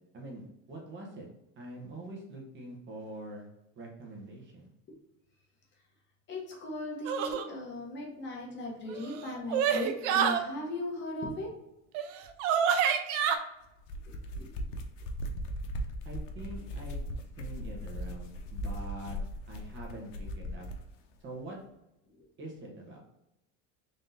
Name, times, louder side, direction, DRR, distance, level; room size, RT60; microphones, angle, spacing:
voice 1, 0.1-1.3 1.6-3.5 3.8-4.7 16.0-17.1 17.4-19.2 19.5-20.7 21.2-21.6 22.4-23.0, right 1 dB, 30° right, -1 dB, 1.0 m, -44 dB
voice 2, 6.3-11.5 14.3-14.6, left 2 dB, 30° left, -1 dB, 1.0 m, -38 dB
sound 1, 7.1-7.5 8.9-10.4 11.9-12.0 12.4-13.4, right 8 dB, 70° right, 0.6 m, -27 dB
sound 2, 13.7-20.9, equal, 75° left, 0.8 m, -38 dB
3.8 x 3.6 x 2.7 m, 0.89 s
supercardioid pair, 145°, 38 cm